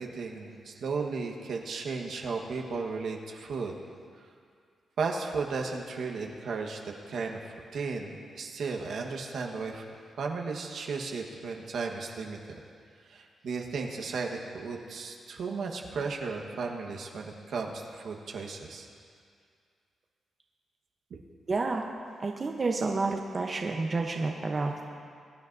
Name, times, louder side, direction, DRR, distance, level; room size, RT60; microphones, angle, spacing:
voice 1, 0.0-3.7 5.0-7.4 7.7-9.8 10.2-12.4 13.1-18.9 21.1-21.2, right 4 dB, 70° right, 1 dB, 1.3 m, -35 dB
voice 2, 21.5-21.8 22.2-24.8, right 3 dB, 35° right, 2 dB, 0.8 m, -29 dB
22.5 x 10.0 x 2.7 m, 2.2 s
cardioid pair, 105°, 0 cm